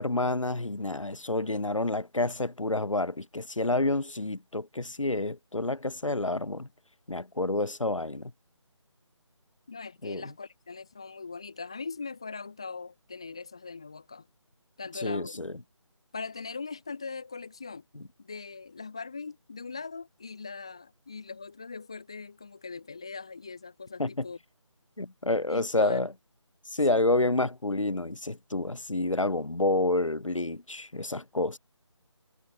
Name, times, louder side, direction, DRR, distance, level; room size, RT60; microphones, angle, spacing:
voice 1, 0.0-6.7 7.1-8.3 10.0-10.3 15.0-15.5 17.9-18.0 24.0-24.1 25.0-26.1 26.7-31.6, left 2 dB, 80° left, 1.2 m, -29 dB
voice 2, 9.7-14.3 14.8-15.4 16.1-17.9 18.2-24.4 25.5-26.0 26.9-27.0, left 4 dB, 10° left, 0.5 m, -40 dB
figure-of-eight pair, 160°, 16 cm